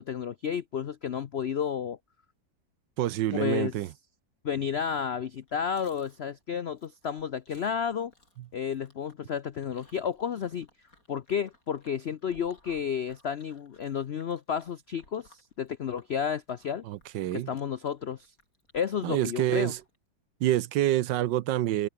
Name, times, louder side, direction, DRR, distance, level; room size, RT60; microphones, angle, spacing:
voice 1, 0.0-2.0 3.3-3.7 4.4-8.1 8.5-10.7 11.1-16.8 17.3-18.3 18.7-19.7, left 7 dB, 75° left, 0.5 m, -32 dB
voice 2, 3.0-3.9 16.9-17.5 19.0-19.8 20.4-21.9, right 14 dB, 75° right, 1.4 m, -27 dB
Chewing mastication, 5.2-20.0, left 2 dB, 45° left, 7.5 m, -62 dB
omnidirectional pair, 2.0 m